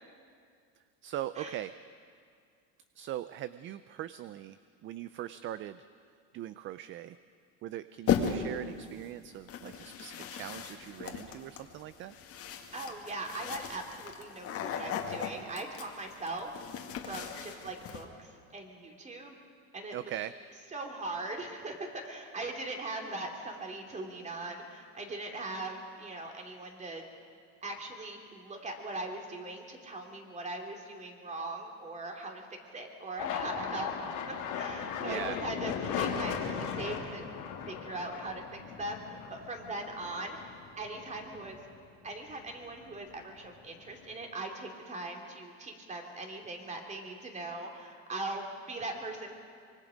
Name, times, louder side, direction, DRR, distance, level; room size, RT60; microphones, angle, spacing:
voice 1, 1.0-1.7 3.0-4.6 4.8-5.8 6.3-7.2 7.6-12.2 19.9-20.3 35.0-35.4, right 12 dB, 35° right, 14 dB, 0.4 m, -40 dB
sound 1, 8.1-8.6 9.5-18.0, left 7 dB, 40° left, 2.0 m, -36 dB
voice 2, 12.7-19.4 19.7-19.9 20.7-27.1 27.6-32.5 32.7-33.9 34.3-37.3 37.7-38.4 38.8-40.4 40.8-41.6 42.0-49.4, right 2 dB, 20° right, 2 dB, 2.9 m, -40 dB
sound 2, 33.2-41.9 42.3-43.0 43.3-44.3, left 7 dB, 60° left, 3.0 m, -38 dB
25.0 x 23.5 x 5.2 m, 2.2 s
cardioid pair, 135°, 35 cm